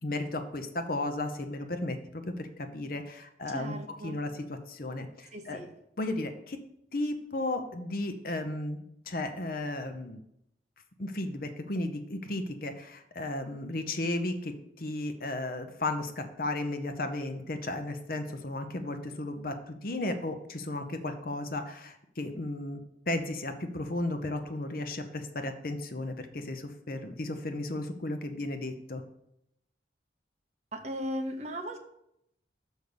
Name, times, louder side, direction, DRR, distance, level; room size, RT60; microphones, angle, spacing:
voice 1, 0.0-3.7 4.0-5.6 6.0-6.6 6.9-10.2 11.0-22.8 23.1-29.0, left 2 dB, 50° left, 7 dB, 0.8 m, -34 dB
voice 2, 3.5-4.2 5.3-5.7 30.7-31.8, equal, 35° right, 4 dB, 1.0 m, -37 dB
6.4 x 5.3 x 6.6 m, 0.78 s
head